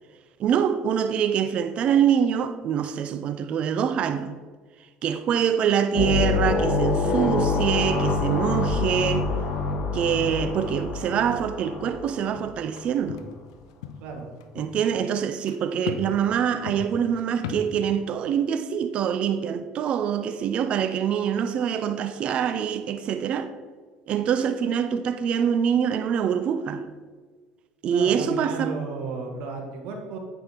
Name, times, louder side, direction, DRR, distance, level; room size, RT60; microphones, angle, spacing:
voice 1, 0.4-4.3 5.0-9.3 9.9-13.2 14.6-23.5 24.1-26.8 27.8-28.8, right 8 dB, 50° right, 0.5 m, -25 dB
sound 1, 5.9-12.4, left 3 dB, 45° left, 2.6 m, -26 dB
sound 2, 12.3-12.8 13.1-13.3 13.6-14.1 14.4-14.9 15.5-15.6 15.9-16.1 16.4-17.7, left 8 dB, 85° left, 0.6 m, -36 dB
voice 2, 27.9-30.2, right 4 dB, 70° right, 1.6 m, -34 dB
8.6 x 5.3 x 4.5 m
supercardioid pair, 90°, 2 cm